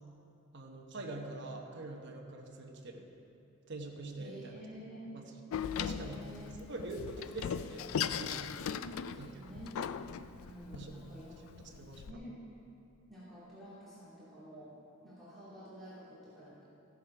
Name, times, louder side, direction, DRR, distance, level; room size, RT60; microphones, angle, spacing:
voice 1, 0.5-3.1 3.7-4.7 5.1-5.2 5.8-6.2 6.7-8.7 9.1-9.5 10.7-10.9 11.6-12.1, right 2 dB, 55° right, 1 dB, 1.1 m, -44 dB
voice 2, 4.2-5.1 5.7-6.7 8.7-9.9 10.3-11.3 12.1-12.5 13.1-14.7 15.0-16.7, equal, ahead, -11 dB, 2.3 m, -49 dB
Door, 5.5-12.1, left 8 dB, 75° left, 0.3 m, -39 dB
14.5 x 7.2 x 4.9 m, 2.8 s
head